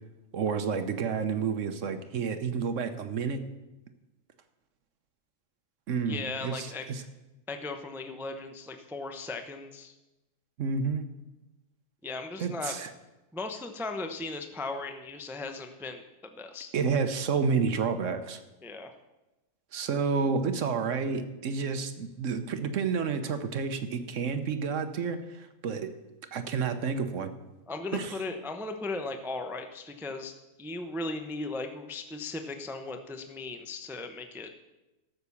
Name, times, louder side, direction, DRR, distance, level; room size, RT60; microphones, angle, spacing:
voice 1, 0.3-3.4 5.9-7.0 10.6-11.1 12.4-12.9 16.7-18.4 19.7-25.9 26.3-27.3 27.9-28.2, right 5 dB, 60° right, 9 dB, 1.1 m, -30 dB
voice 2, 6.1-6.8 7.5-9.9 12.0-12.7 13.3-16.7 18.6-18.9 27.7-34.5, left 3 dB, 5° right, 6 dB, 0.3 m, -37 dB
12.5 x 6.9 x 7.0 m, 1.0 s
omnidirectional pair, 1.6 m